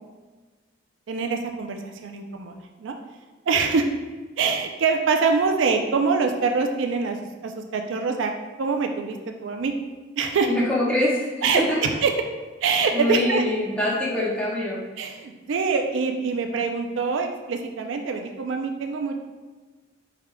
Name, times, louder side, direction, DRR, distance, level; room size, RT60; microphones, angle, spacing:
voice 1, 1.1-3.0 3.5-3.9 4.4-7.2 7.4-8.3 8.6-9.2 9.4-9.7 10.2-10.5 11.4-12.1 12.6-13.4 15.0-19.2, right 5 dB, 75° right, 4 dB, 0.4 m, -24 dB
voice 2, 10.4-11.8 12.9-14.8, left 1 dB, 5° left, -7 dB, 0.9 m, -24 dB
4.8 x 3.5 x 2.2 m, 1.3 s
head